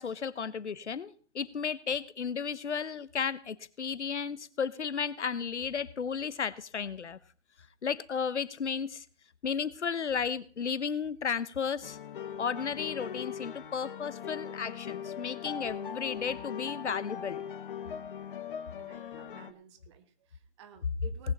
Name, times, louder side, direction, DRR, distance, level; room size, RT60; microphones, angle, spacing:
voice 1, 0.0-7.2 7.8-9.0 9.4-12.0 12.4-17.4, left 6 dB, 85° left, 17 dB, 1.0 m, -34 dB
sound 1, 11.8-19.5, left 8 dB, 50° left, 1.1 m, -40 dB
voice 2, 18.8-21.3, right 8 dB, 25° right, 11 dB, 1.2 m, -54 dB
18.5 x 8.8 x 4.1 m, 0.42 s
hypercardioid pair, 150°, 34 cm